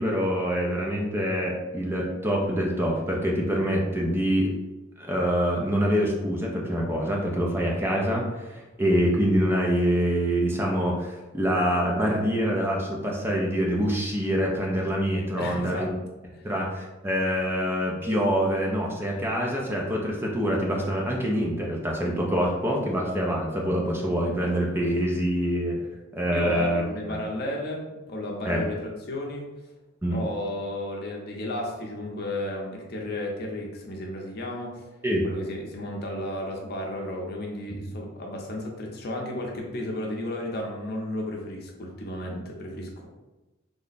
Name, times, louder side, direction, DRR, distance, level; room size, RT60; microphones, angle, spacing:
voice 1, 0.0-4.5 5.0-15.9 16.4-25.8 26.1-26.8 27.1-27.2 28.4-28.7 30.0-30.2 35.0-35.3, equal, 10° right, -2 dB, 0.4 m, -25 dB
voice 2, 15.4-15.9 16.3-16.4 26.3-29.4 30.1-34.8 35.2-43.1, left 1 dB, 50° left, 0 dB, 0.6 m, -33 dB
3.3 x 2.0 x 4.0 m, 1.1 s
head